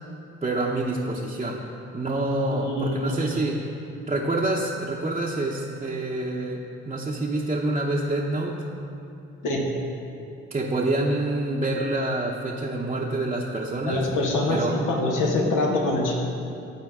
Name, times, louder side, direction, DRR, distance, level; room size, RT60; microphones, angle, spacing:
voice 1, 0.4-1.6 1.9-3.6 4.1-8.6 10.5-14.1 14.5-14.7, right 2 dB, 20° right, -3 dB, 0.7 m, -27 dB
voice 2, 2.5-3.4 9.4-9.7 13.8-16.1, left 2 dB, 85° left, 0 dB, 1.2 m, -25 dB
12.0 x 4.4 x 3.6 m, 2.6 s
supercardioid pair, 60°, 31 cm